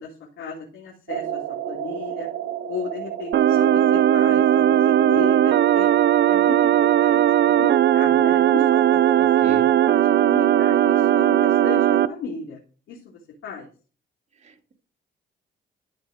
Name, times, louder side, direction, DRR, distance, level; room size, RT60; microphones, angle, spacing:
voice 1, 0.0-2.3 2.7-5.9 6.3-12.6 12.9-13.7, left 5 dB, 80° left, -3 dB, 3.1 m, -35 dB
sound 1, 1.1-7.0, right 10 dB, 75° right, 1.2 m, -34 dB
sound 2, 3.3-12.1, right 11 dB, 60° right, 0.6 m, -18 dB
voice 2, 9.2-9.7 14.4-14.7, right 3 dB, 35° right, 3 dB, 2.4 m, -35 dB
13.5 x 4.9 x 4.8 m, 0.38 s
cardioid pair, 90°, 20 cm